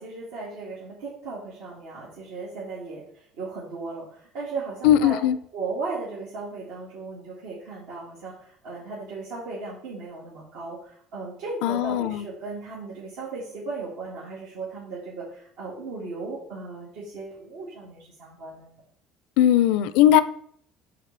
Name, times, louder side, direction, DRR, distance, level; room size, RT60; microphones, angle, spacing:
voice 1, 0.0-5.2 5.5-18.7, right 3 dB, 80° right, -6 dB, 2.0 m, -36 dB
voice 2, 4.8-5.4 11.6-12.2 19.4-20.2, left 11 dB, 75° left, 15 dB, 0.4 m, -19 dB
5.0 x 3.9 x 5.8 m, 0.64 s
supercardioid pair, 95°, 0 cm